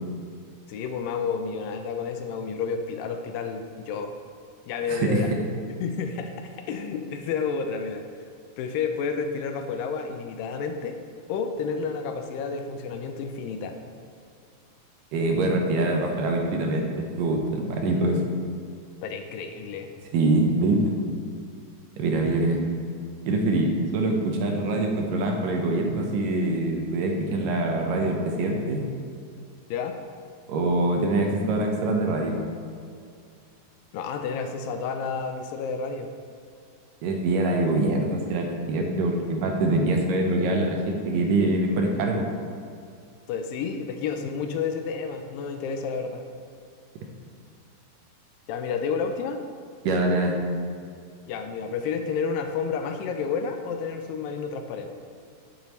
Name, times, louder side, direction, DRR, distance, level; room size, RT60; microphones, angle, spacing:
voice 1, 0.7-4.1 4.7-5.3 5.8-8.0 8.6-11.0 11.3-13.8 19.0-19.9 29.7-30.0 33.9-36.1 43.3-46.2 48.5-49.4 51.3-54.9, left 5 dB, 80° left, 6 dB, 2.2 m, -30 dB
voice 2, 4.9-5.2 15.1-18.2 20.1-20.9 22.0-22.6 23.3-28.8 30.5-32.4 37.0-42.3 49.8-50.4, right 2 dB, 75° right, 1 dB, 2.3 m, -24 dB
9.4 x 8.6 x 3.1 m, 2.3 s
omnidirectional pair, 4.2 m